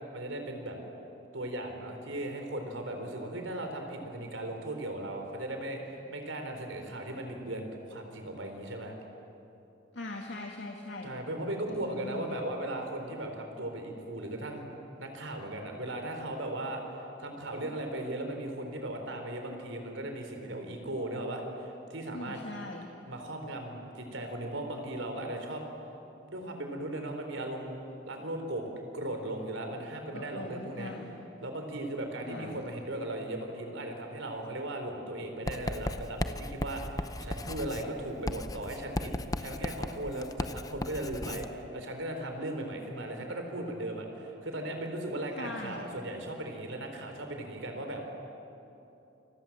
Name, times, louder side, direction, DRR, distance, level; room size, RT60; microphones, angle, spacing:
voice 1, 0.1-0.8 1.3-8.9 11.0-14.7 15.0-16.8 17.2-22.4 23.1-25.6 26.3-27.8 28.1-28.6 28.9-30.9 31.4-39.1 39.4-48.0, right 1 dB, 90° right, 4 dB, 4.3 m, -37 dB
voice 2, 9.9-11.1 11.7-12.4 22.1-22.9 30.1-31.1 32.2-32.7 45.4-45.8, left 2 dB, 70° left, 1 dB, 2.1 m, -41 dB
Writing, 35.5-41.5, left 1 dB, 20° left, 0.7 m, -36 dB
29.0 x 25.0 x 7.4 m, 2.9 s
head